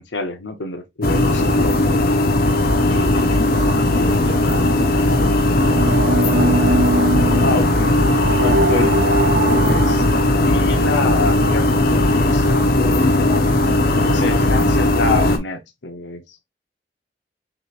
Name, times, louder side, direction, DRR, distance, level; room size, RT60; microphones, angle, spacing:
voice 1, 0.0-2.1 7.4-8.0 8.4-9.0 9.5-13.5 13.9-16.4, left 3 dB, 85° left, 0.8 m, -27 dB
sound 1, 1.0-15.4, left 1 dB, 55° left, 0.9 m, -17 dB
voice 2, 2.9-5.7, left 1 dB, 25° left, 2.7 m, -32 dB
sound 2, 4.5-10.3, right 2 dB, 55° right, 0.6 m, -22 dB
6.2 x 3.1 x 2.4 m
head